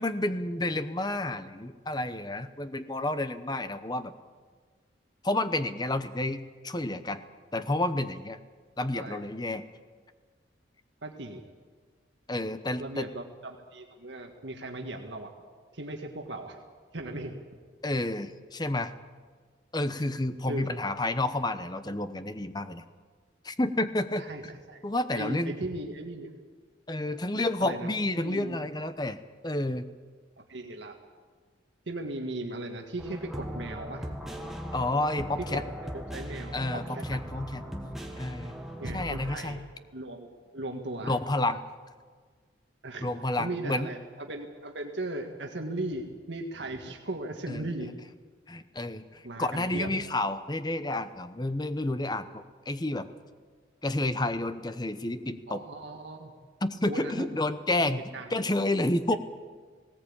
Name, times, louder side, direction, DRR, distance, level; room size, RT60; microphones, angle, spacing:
voice 1, 0.0-4.1 5.2-7.2 7.5-8.4 8.8-9.6 12.3-13.1 17.8-18.9 19.7-22.8 23.4-24.3 24.8-25.5 26.9-29.2 29.4-29.8 34.7-35.6 36.5-37.6 38.2-38.6 38.9-39.6 41.0-41.6 43.0-43.9 47.5-47.7 48.5-53.1 53.8-55.6 56.6-59.2, left 2 dB, 20° left, 11 dB, 0.9 m, -30 dB
voice 2, 11.0-11.4 12.8-15.3 15.7-16.6 16.9-17.3 20.5-20.6 24.2-24.8 25.1-26.3 27.6-27.9 28.2-28.6 30.5-31.0 31.9-34.1 35.5-35.6 35.9-37.2 38.8-39.6 39.9-40.3 40.5-41.2 42.8-43.1 43.4-47.9 49.2-49.9 55.5-56.3 56.9-57.3 58.1-58.5 59.1-59.2, right 2 dB, 70° right, 2 dB, 1.8 m, -37 dB
sound 1, 33.0-39.4, equal, ahead, 1.7 m, -38 dB
19.0 x 17.5 x 8.7 m, 1.5 s
head